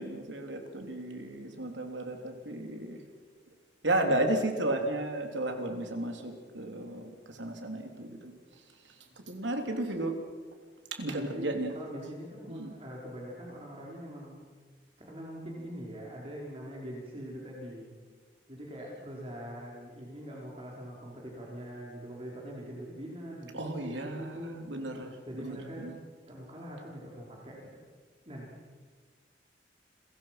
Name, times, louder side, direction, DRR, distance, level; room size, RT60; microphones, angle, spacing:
voice 1, 0.0-3.0 3.8-7.1 7.4-8.3 9.3-10.1 10.9-11.7 12.5-12.7 23.5-25.9, right 1 dB, 85° right, 4 dB, 3.4 m, -33 dB
voice 2, 11.1-14.4 15.0-17.9 18.5-24.6 25.3-25.9 26.3-27.8 28.3-28.7, equal, 30° right, -3 dB, 4.6 m, -43 dB
29.5 x 23.0 x 6.0 m, 1.5 s
head